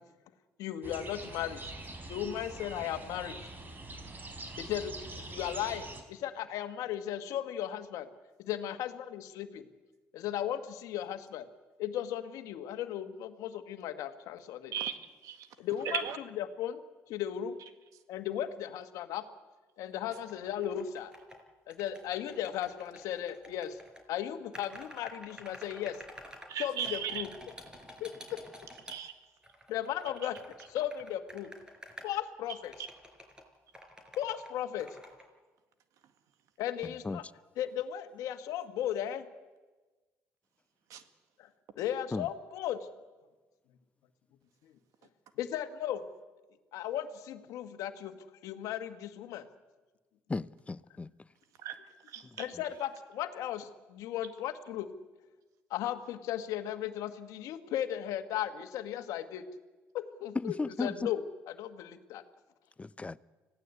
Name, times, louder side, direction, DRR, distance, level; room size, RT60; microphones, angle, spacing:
voice 1, 0.6-1.6 2.1-3.4 4.6-8.1 8.4-9.7 10.1-11.4 11.8-14.7 15.6-16.0 16.4-16.8 17.1-17.6 18.1-19.2 19.8-21.1 21.7-23.8 24.1-26.0 26.6-27.3 28.0-28.4 29.7-30.4 30.7-31.5 32.0-32.7 34.2-34.9 36.6-37.2 37.5-39.3 41.4-41.5 41.7-42.9 44.6-44.7 45.4-46.0 46.7-48.1 48.4-49.4 52.4-54.9 55.7-59.4 59.9-62.2, left 11 dB, 75° left, 1.7 m, -36 dB
sound 1, 0.8-6.0, right 2 dB, 35° right, 4.1 m, -44 dB
voice 2, 14.7-15.5 15.8-16.2 26.5-27.2 28.9-29.1 32.8-32.9 40.9-41.0 51.6-51.8 52.1-52.5, right 9 dB, 70° right, 2.0 m, -37 dB
sound 2, 20.1-21.4 21.7-24.0 24.5-26.5 26.8-29.0 29.4-32.0 32.6-33.4 33.7-34.5 34.8-35.3, equal, 15° right, 5.0 m, -50 dB
voice 3, 50.3-51.1 60.4-60.9 62.8-63.2, left 3 dB, 20° left, 0.7 m, -35 dB
25.5 x 17.0 x 8.3 m
supercardioid pair, 65°, 6 cm